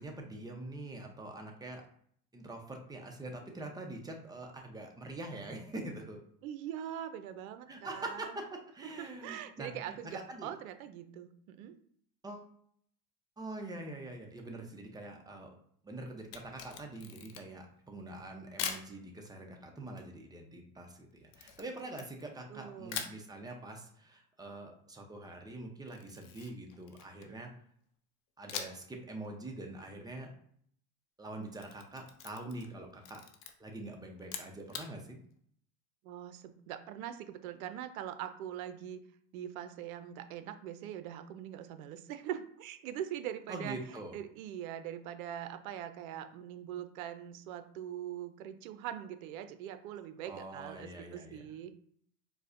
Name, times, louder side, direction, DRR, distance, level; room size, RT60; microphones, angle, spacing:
voice 1, 0.0-1.8 2.3-6.2 7.7-8.4 8.7-10.5 12.2-12.5 13.4-15.5 15.8-27.5 28.4-30.3 31.2-33.2 33.6-35.2 43.5-44.1 50.3-51.4, right 2 dB, 10° right, 2 dB, 0.6 m, -44 dB
voice 2, 6.4-8.3 9.0-11.7 22.5-23.1 36.0-39.0 39.3-51.7, right 10 dB, 75° right, 10 dB, 0.6 m, -42 dB
Camera, 16.2-17.7 18.6-18.9 21.3-22.5 22.9-23.2 25.9-27.4 28.5-28.9 29.2-29.3 31.3-32.7 33.0-33.5 34.2-34.9, left 8 dB, 55° left, 0.7 m, -42 dB
4.7 x 2.1 x 2.5 m, 0.63 s
supercardioid pair, 105°, 43 cm